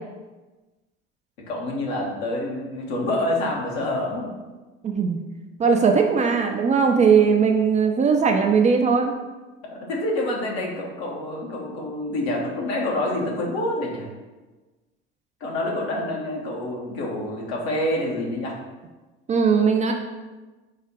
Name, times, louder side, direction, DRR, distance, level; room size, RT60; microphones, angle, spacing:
voice 1, 1.5-4.3 9.9-14.1 15.4-18.6, left 1 dB, 70° left, -2 dB, 1.2 m, -27 dB
voice 2, 4.8-5.2 5.6-9.2 19.3-19.9, right 5 dB, 20° right, 3 dB, 0.4 m, -19 dB
4.7 x 2.4 x 4.6 m, 1.2 s
figure-of-eight pair, 65°, 33 cm